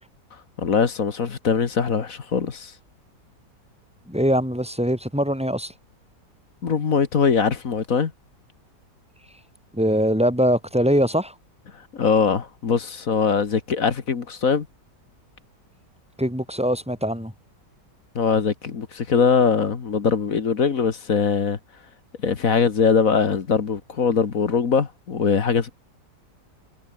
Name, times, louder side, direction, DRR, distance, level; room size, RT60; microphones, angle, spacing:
voice 1, 0.6-2.7 6.6-8.1 11.9-14.7 18.2-21.6 22.2-25.7, left 6 dB, 50° left, 1.9 m, -21 dB
voice 2, 4.1-5.7 9.7-11.3 16.2-17.3, equal, 5° right, 6.4 m, -22 dB
omnidirectional pair, 1.9 m